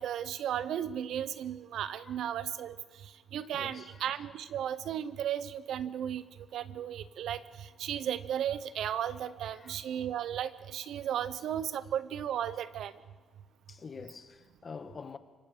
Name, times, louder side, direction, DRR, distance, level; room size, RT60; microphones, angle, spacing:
voice 1, 0.0-2.8 3.3-6.2 6.5-7.4 7.8-12.9, right 10 dB, 75° right, 0.8 m, -35 dB
voice 2, 1.9-2.2 3.5-4.3 9.5-10.0 11.3-11.5 13.7-15.2, left 5 dB, 40° left, 1.3 m, -47 dB
25.0 x 23.5 x 5.0 m
cardioid pair, 90°, 0 cm